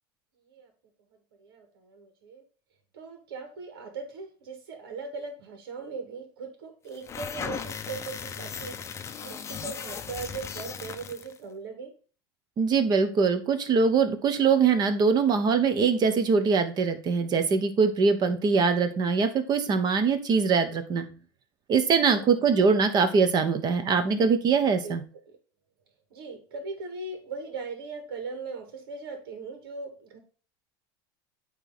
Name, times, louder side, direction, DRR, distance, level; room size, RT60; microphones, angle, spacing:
voice 1, 1.4-2.4 2.9-8.8 9.2-11.9 22.1-22.3 24.8-25.0 26.1-30.2, right 4 dB, 90° right, 5 dB, 1.9 m, -39 dB
sound 1, 6.9-11.4, left 7 dB, 25° left, 0.6 m, -37 dB
voice 2, 12.6-21.0 21.7-25.0, right 5 dB, 35° right, 9 dB, 1.2 m, -23 dB
8.8 x 3.3 x 4.0 m, 0.38 s
supercardioid pair, 125°, 12 cm